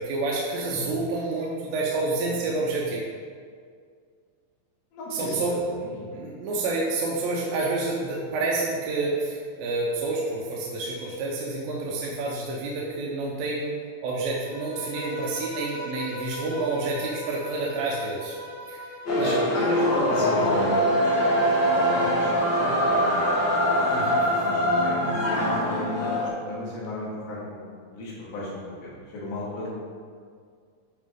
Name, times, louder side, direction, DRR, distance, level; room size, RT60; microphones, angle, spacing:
voice 1, 0.0-3.0 5.1-5.6 6.1-13.8 14.0-18.4 18.7-18.9 19.2-19.4 23.9-24.2, right 3 dB, 80° right, -3 dB, 2.6 m, -28 dB
voice 2, 4.9-6.1 19.1-20.8 21.7-28.5 28.8-29.7, left 1 dB, 90° left, -6 dB, 3.7 m, -34 dB
Bowed string instrument, 14.4-19.4, equal, 70° left, 2.8 m, -38 dB
sound 1, 19.1-26.3, equal, 45° left, 1.6 m, -23 dB
11.0 x 4.9 x 3.6 m, 2.1 s
omnidirectional pair, 4.1 m